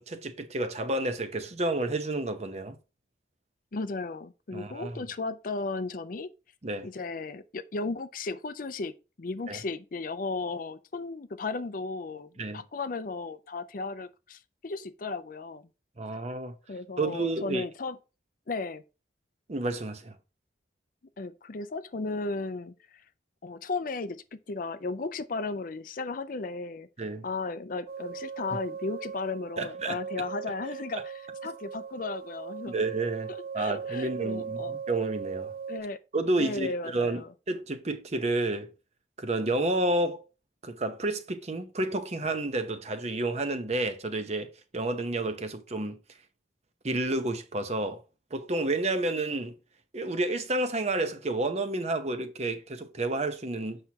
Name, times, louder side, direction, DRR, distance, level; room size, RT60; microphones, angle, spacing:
voice 1, 0.0-2.8 4.5-5.0 6.6-6.9 9.5-9.6 12.4-12.6 16.0-16.5 17.0-17.6 19.5-20.1 27.0-27.3 29.6-30.0 32.7-35.5 36.1-38.7 39.2-40.2 40.6-46.0 46.8-48.0 48.3-49.6 49.9-53.8, right 2 dB, 35° right, 0.8 m, -30 dB
voice 2, 3.7-6.3 6.8-15.7 16.7-18.0 18.5-18.8 21.2-23.0 23.4-26.9 27.2-32.7 33.3-34.8 35.7-36.0 36.4-37.3, left 3 dB, 50° left, 0.5 m, -35 dB
sound 1, 27.9-35.8, right 6 dB, 55° right, 0.4 m, -38 dB
7.8 x 5.9 x 2.9 m
head